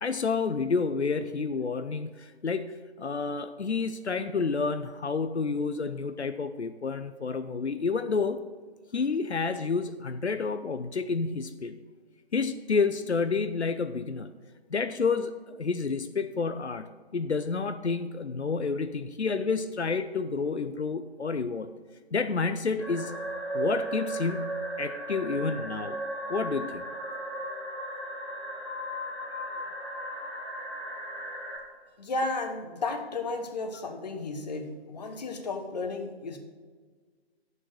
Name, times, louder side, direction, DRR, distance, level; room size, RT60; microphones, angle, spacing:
voice 1, 0.0-8.4 8.9-11.8 12.3-14.3 14.7-21.7 22.1-23.2 23.5-26.0 26.3-26.9, left 4 dB, 85° left, 10 dB, 0.6 m, -29 dB
sound 1, 22.8-31.6, right 1 dB, ahead, 1.1 m, -35 dB
voice 2, 32.0-36.4, left 3 dB, 40° left, 5 dB, 1.1 m, -33 dB
7.5 x 6.4 x 6.4 m, 1.5 s
figure-of-eight pair, 140°, 32 cm